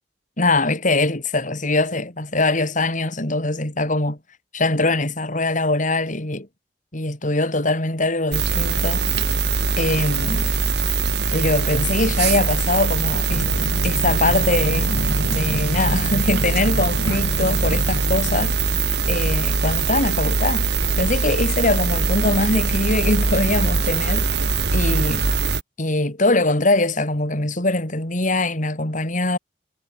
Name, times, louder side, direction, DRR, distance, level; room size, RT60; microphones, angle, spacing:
voice 1, 0.4-4.2 4.5-6.5 6.9-9.1 9.8-10.5 11.3-13.4 13.8-14.9 15.3-18.5 19.1-20.7 21.0-24.4 24.7-25.2 25.8-29.4, left 2 dB, 45° left, 4.5 m, -22 dB
sound 1, 8.3-25.6, right 4 dB, 70° right, 2.0 m, -22 dB
sound 2, 13.3-18.5, left 1 dB, 90° left, 2.2 m, -30 dB
head